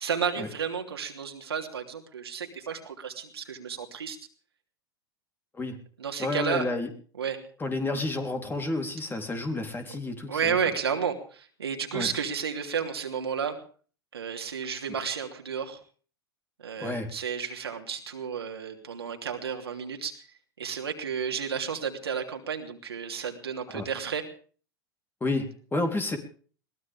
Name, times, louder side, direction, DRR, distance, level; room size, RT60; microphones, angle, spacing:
voice 1, 0.0-4.2 6.0-6.6 7.2-7.4 10.3-13.6 14.1-15.8 16.6-20.3 20.6-24.2, right 7 dB, 85° right, 3 dB, 3.0 m, -32 dB
voice 2, 6.2-6.9 7.6-10.6 11.9-12.1 16.8-17.1 23.7-23.9 25.2-26.2, left 2 dB, 15° left, 4 dB, 3.7 m, -30 dB
22.0 x 18.0 x 3.6 m, 0.42 s
hypercardioid pair, 90°, 13 cm